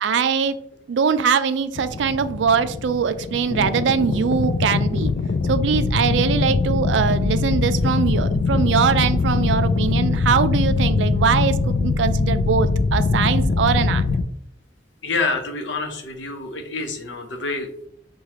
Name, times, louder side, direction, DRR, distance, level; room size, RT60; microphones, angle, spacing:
voice 1, 0.0-0.6 0.9-5.1 5.5-14.0, right 6 dB, 75° right, 11 dB, 0.4 m, -22 dB
sound 1, 1.8-14.2, left 3 dB, 45° left, 0.3 m, -22 dB
voice 2, 15.0-17.9, left 3 dB, 80° left, 5 dB, 0.8 m, -27 dB
6.4 x 2.3 x 2.9 m, 0.73 s
head